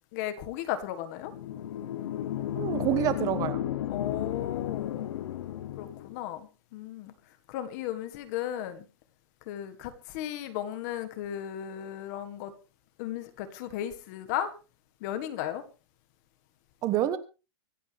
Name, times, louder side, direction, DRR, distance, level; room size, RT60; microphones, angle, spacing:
voice 1, 0.1-1.3 3.9-5.1 5.8-7.1 7.5-8.8 9.5-12.5 13.0-14.5 15.0-15.6, left 11 dB, 40° left, 1.7 m, -35 dB
sound 1, 1.2-6.2, left 12 dB, 90° left, 1.0 m, -33 dB
voice 2, 2.5-3.6 16.8-17.2, right 12 dB, 25° right, 1.2 m, -27 dB
24.5 x 8.4 x 3.5 m
supercardioid pair, 170°, 14 cm